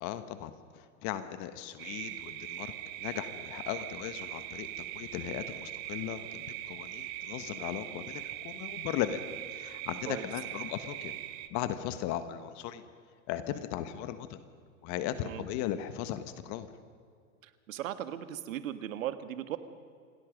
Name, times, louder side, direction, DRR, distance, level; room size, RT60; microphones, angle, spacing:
voice 1, 0.0-2.7 3.0-9.2 9.5-11.1 11.5-12.8 13.3-14.4 14.8-16.7, left 11 dB, 45° left, 11 dB, 1.5 m, -37 dB
sound 1, 1.8-11.5, right 14 dB, 50° right, 1.5 m, -41 dB
voice 2, 17.4-19.6, right 11 dB, 70° right, 11 dB, 1.6 m, -37 dB
27.5 x 19.0 x 5.2 m, 2.2 s
hypercardioid pair, 110°, 41 cm